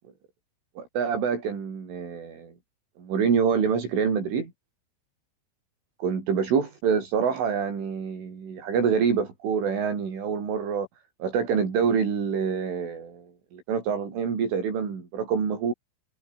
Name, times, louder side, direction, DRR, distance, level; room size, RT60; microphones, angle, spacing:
voice 1, 0.8-2.5 3.0-4.5 6.0-10.9 11.2-15.7, right 6 dB, 70° right, 8.2 m, -26 dB
omnidirectional pair, 5.9 m